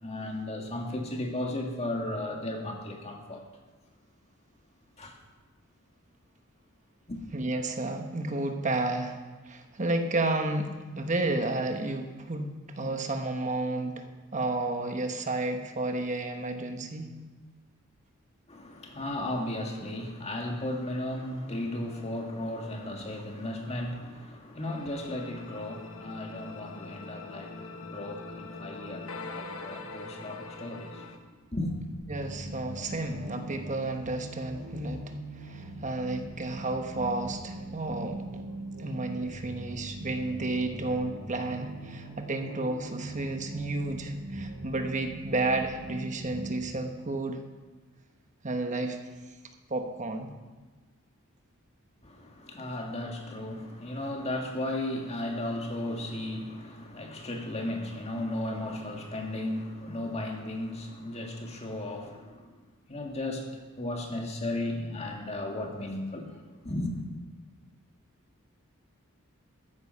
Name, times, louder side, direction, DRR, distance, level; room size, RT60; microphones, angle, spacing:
voice 1, 0.0-3.4 5.0-5.1 7.1-7.2 18.5-31.7 52.0-62.5 62.9-67.0, left 1 dB, 30° left, 2 dB, 1.9 m, -35 dB
voice 2, 7.3-9.2 9.4-14.1 14.3-17.1 32.1-35.0 35.4-38.4 38.8-47.4 48.4-49.0 49.7-50.3, right 2 dB, 35° right, 5 dB, 1.2 m, -31 dB
sound 1, 24.6-31.2, left 3 dB, 80° left, 1.1 m, -43 dB
sound 2, 31.9-46.6, right 1 dB, 70° right, 3.4 m, -41 dB
14.0 x 9.7 x 5.5 m, 1.3 s
head